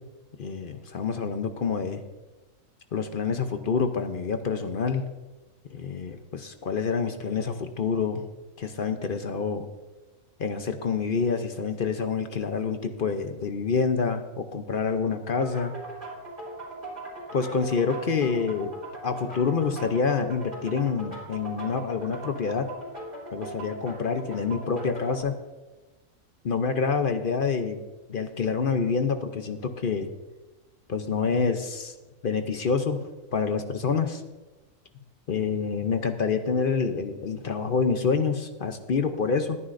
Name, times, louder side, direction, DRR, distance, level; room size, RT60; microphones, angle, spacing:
voice 1, 0.4-2.0 2.9-5.0 5.7-8.2 8.6-9.7 10.4-15.7 17.3-18.7 19.0-22.7 23.3-25.4 26.4-27.8 28.1-30.1 30.9-31.9 32.2-33.0 33.3-34.2 35.3-39.6, left 5 dB, 50° left, 7 dB, 0.8 m, -27 dB
sound 1, 15.4-25.2, right 1 dB, 40° right, 3.3 m, -40 dB
21.0 x 9.8 x 2.6 m, 1.2 s
omnidirectional pair, 1.4 m